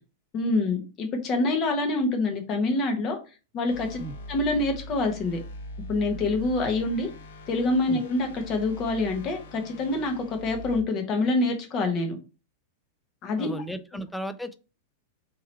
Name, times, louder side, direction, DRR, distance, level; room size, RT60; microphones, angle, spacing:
voice 1, 0.3-3.2 3.5-4.0 4.3-5.4 5.9-7.1 7.5-12.2 13.2-13.5, left 2 dB, 35° left, 1.1 m, -26 dB
sound 1, 3.7-10.8, left 1 dB, 80° left, 0.9 m, -42 dB
voice 2, 13.4-14.6, right 1 dB, 5° left, 0.4 m, -35 dB
3.7 x 3.1 x 4.2 m
supercardioid pair, 145°, 0 cm